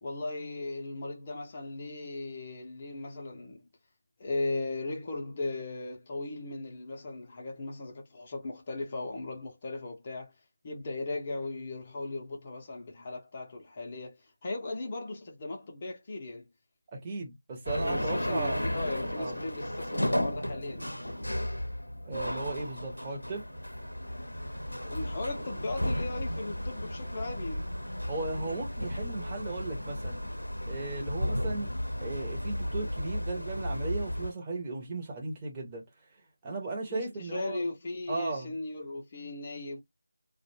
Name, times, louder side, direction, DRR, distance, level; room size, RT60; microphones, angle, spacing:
voice 1, 0.0-3.6 4.2-10.3 10.6-16.5 17.8-20.9 24.8-27.7 36.9-39.8, left 2 dB, 25° left, 0.5 m, -37 dB
voice 2, 16.9-18.6 19.2-19.4 22.0-23.4 28.1-30.2 30.7-31.7 32.0-35.8 36.4-37.6 38.1-38.5, right 3 dB, 15° right, 0.7 m, -36 dB
sound 1, 17.7-34.3, equal, 85° left, 0.5 m, -34 dB
2.4 x 2.1 x 3.0 m
figure-of-eight pair, 165°, 0 cm